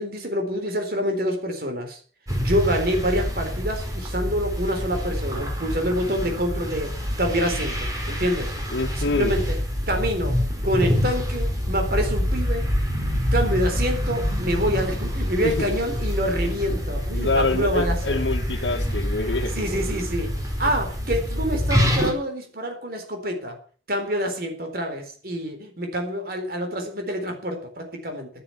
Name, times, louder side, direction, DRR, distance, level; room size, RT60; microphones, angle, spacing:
voice 1, 0.0-2.0 2.4-8.6 9.0-9.6 9.9-12.7 13.3-18.2 19.6-20.3 20.6-23.6 23.9-28.3, equal, 55° right, 4.0 m, -27 dB
sound 1, 2.3-22.1, equal, 20° right, 4.9 m, -26 dB
voice 2, 8.7-9.4 15.4-15.7 17.1-19.6, left 2 dB, 90° left, 1.4 m, -25 dB
12.5 x 11.0 x 7.2 m
head